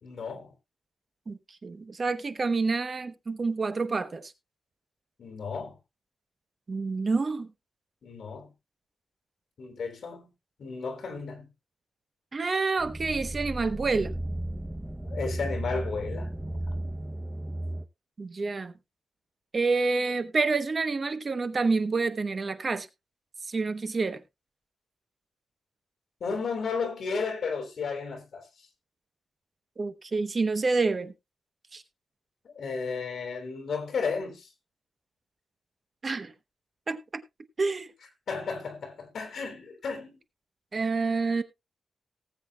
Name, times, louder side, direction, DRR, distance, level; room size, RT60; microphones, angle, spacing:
voice 1, 0.0-0.5 5.2-5.8 8.0-8.5 9.6-10.3 10.6-11.5 15.0-16.6 26.2-28.5 32.4-34.5 38.3-40.2, left 5 dB, 65° left, 3.2 m, -33 dB
voice 2, 1.3-4.3 6.7-7.5 12.3-14.1 18.2-18.7 19.5-22.9 23.5-24.2 29.8-31.1 31.7-31.8 36.0-36.3 36.9-37.2 37.6-37.9 40.7-41.4, right 4 dB, 35° right, 0.9 m, -28 dB
sound 1, 12.8-17.8, right 1 dB, 5° right, 0.7 m, -34 dB
19.0 x 7.9 x 2.3 m
wide cardioid pair, 145°, 0 cm